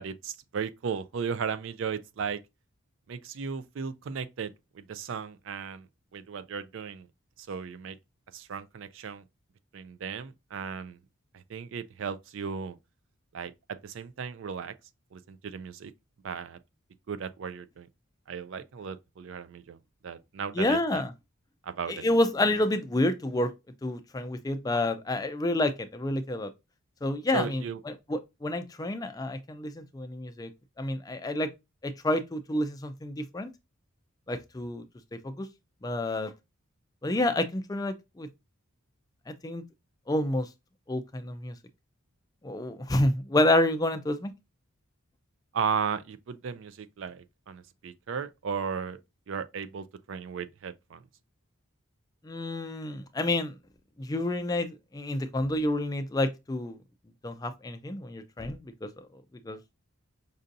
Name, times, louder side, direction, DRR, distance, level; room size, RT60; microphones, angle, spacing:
voice 1, 0.0-2.4 3.1-5.9 6.1-7.1 7.4-8.0 8.3-9.2 9.7-11.0 11.3-12.8 13.3-14.7 15.1-15.9 16.2-16.6 17.1-17.9 18.3-19.8 20.0-21.1 21.6-22.0 27.3-27.8 45.5-49.0 49.3-51.0, right 6 dB, 60° right, 0.3 m, -35 dB
voice 2, 20.6-21.1 21.9-23.5 23.8-26.5 27.0-27.6 28.1-30.5 30.8-31.5 31.8-33.5 34.3-34.8 35.2-35.5 35.8-36.3 37.0-38.3 39.3-39.6 40.1-40.5 40.9-41.5 42.4-44.3 52.2-53.5 54.0-56.8 57.2-58.9 59.4-59.6, left 1 dB, 15° left, 0.3 m, -29 dB
5.3 x 2.6 x 2.5 m
head